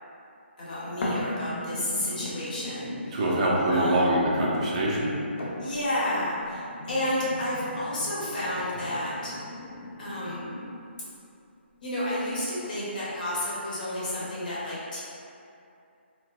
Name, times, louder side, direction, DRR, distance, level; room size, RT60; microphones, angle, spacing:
voice 1, 0.6-3.3 3.7-4.1 5.6-9.3 10.0-10.5 11.8-15.0, left 1 dB, 45° left, -8 dB, 1.0 m, -31 dB
sound 1, 1.0-11.0 11.6-11.7, left 1 dB, 75° left, 0.7 m, -38 dB
voice 2, 3.1-5.1, right 1 dB, 35° right, -5 dB, 0.6 m, -24 dB
4.5 x 2.1 x 2.4 m, 2.6 s
hypercardioid pair, 165°, 6 cm